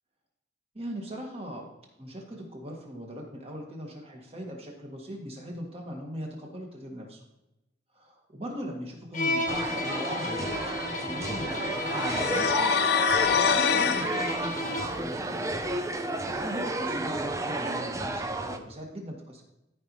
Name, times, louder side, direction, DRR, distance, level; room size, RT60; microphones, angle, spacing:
voice 1, 0.7-1.7 2.0-7.2 7.9-12.5 13.5-15.4 16.4-19.4, equal, 35° right, 0 dB, 1.9 m, -39 dB
Bowed string instrument, 9.1-15.1, left 2 dB, 45° left, 1.1 m, -33 dB
sound 1, 9.5-18.6, right 2 dB, 15° right, 0.6 m, -32 dB
sound 2, 11.9-14.1, left 7 dB, 60° left, 0.4 m, -25 dB
14.0 x 5.5 x 3.1 m, 0.93 s
head